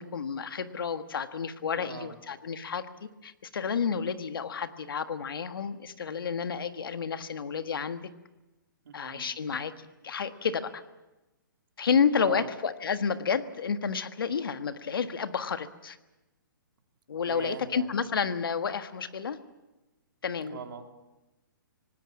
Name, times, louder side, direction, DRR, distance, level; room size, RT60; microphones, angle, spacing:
voice 1, 0.0-8.0 8.9-10.8 11.8-16.0 17.1-19.4 20.2-20.6, left 6 dB, 80° left, 10 dB, 1.6 m, -30 dB
voice 2, 1.7-2.1 8.8-9.3 12.2-12.5 17.2-17.9 20.5-20.9, right 6 dB, 70° right, 4 dB, 3.3 m, -41 dB
26.0 x 19.0 x 7.3 m, 1.0 s
hypercardioid pair, 150°, 12 cm